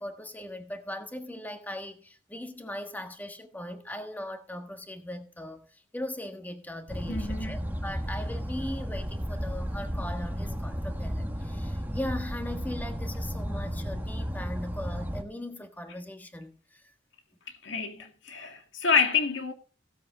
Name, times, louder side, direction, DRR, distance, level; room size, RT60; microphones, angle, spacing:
voice 1, 0.0-16.9, left 1 dB, 10° left, 1.4 m, -39 dB
sound 1, 6.9-15.2, equal, 10° right, 1.2 m, -33 dB
voice 2, 7.1-7.7 15.9-16.0 17.6-19.5, left 5 dB, 70° left, 2.1 m, -28 dB
16.5 x 7.7 x 3.8 m
head